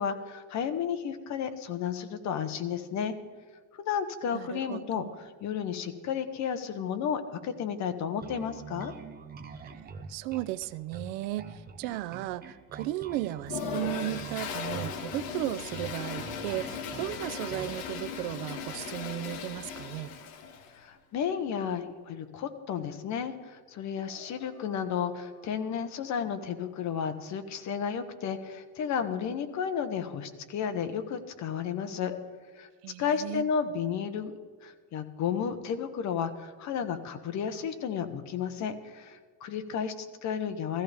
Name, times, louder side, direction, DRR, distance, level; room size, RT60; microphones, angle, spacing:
voice 1, 0.0-3.1 3.7-5.1 5.4-8.9 20.7-32.2 32.6-32.7 33.0-40.8, left 7 dB, 45° left, 8 dB, 1.2 m, -32 dB
voice 2, 4.3-5.1 9.6-9.7 10.1-20.1 32.8-33.5, right 15 dB, 80° right, 16 dB, 0.6 m, -35 dB
Bass guitar, 8.2-17.8, right 5 dB, 25° right, 1.0 m, -45 dB
Toilet flush, 13.4-20.7, left 6 dB, 60° left, 1.7 m, -38 dB
sound 1, 24.0-27.9, right 2 dB, 15° left, 3.1 m, -58 dB
16.0 x 14.5 x 3.5 m, 1.5 s
cardioid pair, 145°, 39 cm